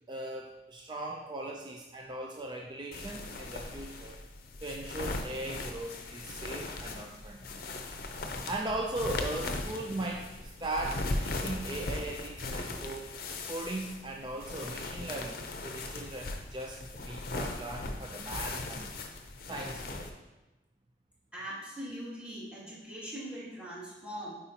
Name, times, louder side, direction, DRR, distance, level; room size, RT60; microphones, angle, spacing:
voice 1, 0.1-4.2 4.6-7.6 8.5-13.1 13.5-18.9 19.5-20.1, right 2 dB, 25° right, 1 dB, 0.4 m, -38 dB
sound 1, 2.9-20.1, left 2 dB, 55° left, 0.6 m, -38 dB
voice 2, 21.3-24.3, equal, 5° right, -9 dB, 2.2 m, -41 dB
8.3 x 4.9 x 2.8 m, 0.99 s
head